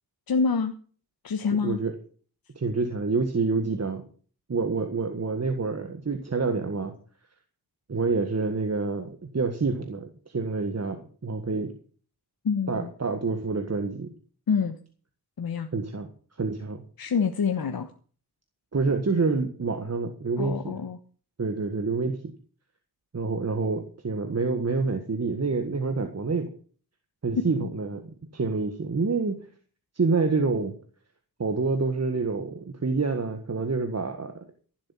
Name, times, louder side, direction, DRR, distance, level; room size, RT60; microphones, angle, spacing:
voice 1, 0.3-0.7 1.2-1.8 12.4-12.9 14.5-14.8 15.4-15.7 17.0-17.9 20.4-21.0 27.5-27.7, left 5 dB, 65° left, 7 dB, 1.2 m, -26 dB
voice 2, 1.6-1.9 2.5-4.0 4.5-6.9 7.9-11.7 12.7-14.1 15.7-16.1 16.4-16.8 18.7-20.8 21.4-22.3 23.1-26.5 27.2-29.5 29.9-30.8 31.4-34.4, right 4 dB, 40° right, 6 dB, 1.7 m, -27 dB
15.0 x 7.9 x 7.3 m, 0.43 s
wide cardioid pair, 85°, 39 cm